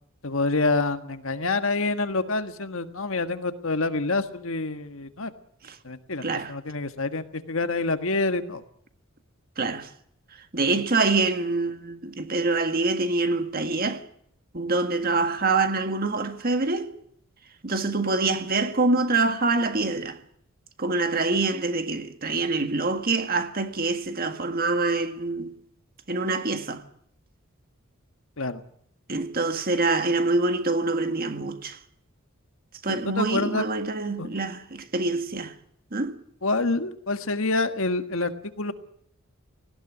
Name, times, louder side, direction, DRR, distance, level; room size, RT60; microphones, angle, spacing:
voice 1, 0.2-5.3 5.8-8.6 28.4-28.6 32.9-33.6 34.2-34.3 36.4-38.7, left 3 dB, 65° left, 1.6 m, -27 dB
voice 2, 6.2-6.5 9.6-9.9 10.5-14.0 14.5-17.0 17.6-20.2 20.8-25.5 26.1-26.8 29.1-31.8 32.8-35.5 35.9-36.2, right 3 dB, 45° right, 1.8 m, -25 dB
18.5 x 16.5 x 10.0 m
head